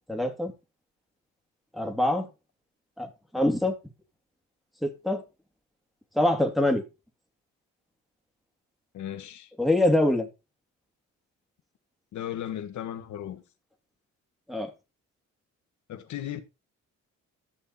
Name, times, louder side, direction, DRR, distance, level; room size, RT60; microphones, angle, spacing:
voice 1, 0.1-0.5 1.8-2.3 3.0-3.7 4.8-5.2 6.2-6.8 9.6-10.3 14.5-14.7, left 1 dB, ahead, 2.9 m, -24 dB
voice 2, 8.9-9.5 12.1-13.4 15.9-16.4, left 11 dB, 75° left, 1.6 m, -36 dB
13.5 x 6.6 x 4.3 m
cardioid pair, 90°, 30 cm